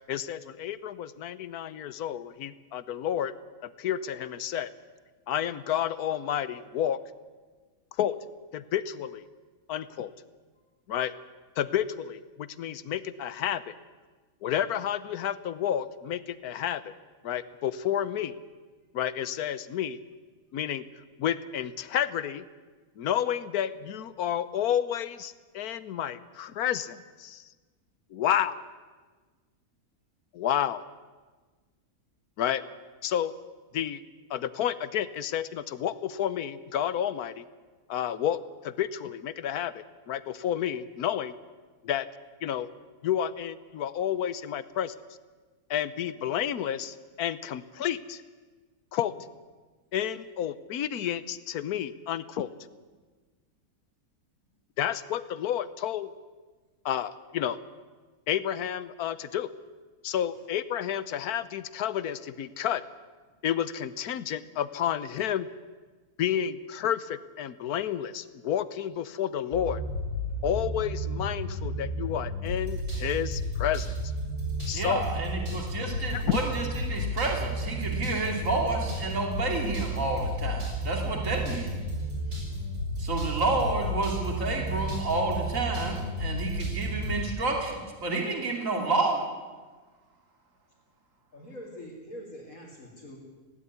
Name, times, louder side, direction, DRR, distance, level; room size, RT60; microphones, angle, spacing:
voice 1, 0.0-3.3 3.6-4.7 5.3-7.0 8.0-8.2 8.5-9.3 9.7-10.1 10.9-11.1 11.6-13.7 14.4-16.8 17.2-18.3 18.9-20.0 20.5-20.8 21.2-22.5 23.0-27.4 28.1-28.6 30.3-30.8 32.4-32.6 33.0-33.3 33.7-34.0 34.3-37.4 37.9-41.3 41.8-42.1 42.4-42.7 43.0-44.9 45.7-48.2 48.9-49.3 49.9-52.5 54.8-56.1 56.8-57.6 58.3-59.5 60.0-62.8 63.4-65.5 66.2-69.8 70.4-73.9 74.7-75.0 76.1-76.4, left 10 dB, 75° left, 15 dB, 1.3 m, -30 dB
sound 1, 69.5-87.2, equal, 75° right, 7.1 m, -32 dB
voice 2, 74.7-81.7 83.0-89.2, right 3 dB, 55° right, 1 dB, 3.2 m, -30 dB
voice 3, 91.3-93.2, equal, 60° left, -4 dB, 3.8 m, -44 dB
18.0 x 17.5 x 9.6 m, 1.4 s
omnidirectional pair, 1.6 m